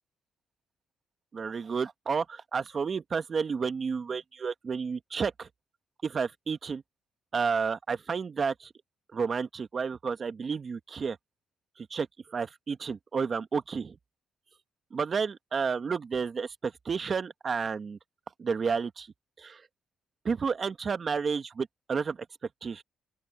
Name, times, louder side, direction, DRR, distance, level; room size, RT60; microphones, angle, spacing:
voice 1, 1.3-5.5 6.0-6.8 7.3-8.7 9.1-11.2 11.8-14.0 14.9-18.0 18.4-19.1 19.4-19.6 20.2-22.2 22.6-22.8, right 5 dB, 40° right, 1.6 m, -31 dB
open air
cardioid pair, 90°, 0 cm